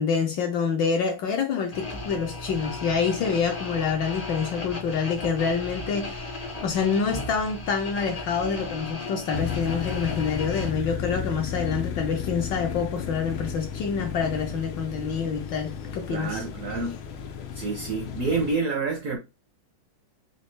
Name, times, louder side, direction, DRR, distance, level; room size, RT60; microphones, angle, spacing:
voice 1, 0.0-16.4, left 6 dB, 70° left, 1.3 m, -27 dB
sound 1, 1.7-10.7, left 2 dB, 50° left, 0.4 m, -36 dB
sound 2, 9.3-18.5, left 7 dB, 85° left, 1.5 m, -33 dB
voice 2, 16.1-17.0 17.5-19.2, right 4 dB, 60° right, 0.8 m, -28 dB
4.1 x 2.7 x 3.2 m
omnidirectional pair, 2.2 m